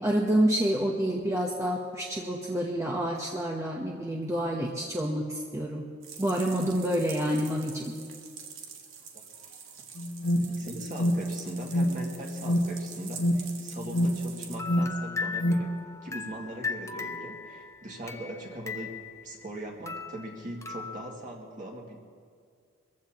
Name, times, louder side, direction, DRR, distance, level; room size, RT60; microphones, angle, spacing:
voice 1, 0.0-5.3 5.5-5.8 6.2-7.8, right 1 dB, 15° right, -1 dB, 0.9 m, -28 dB
sound 1, 6.0-14.6, right 7 dB, 85° right, 1.8 m, -45 dB
Alarm, 10.0-15.8, equal, 85° left, 1.5 m, -28 dB
voice 2, 10.4-15.8 16.0-19.0 19.2-22.0, right 1 dB, 40° right, -1 dB, 2.2 m, -40 dB
sound 2, 14.5-19.5 19.9-21.1, left 5 dB, 15° left, 0.6 m, -38 dB
23.5 x 15.0 x 2.9 m, 2.2 s
head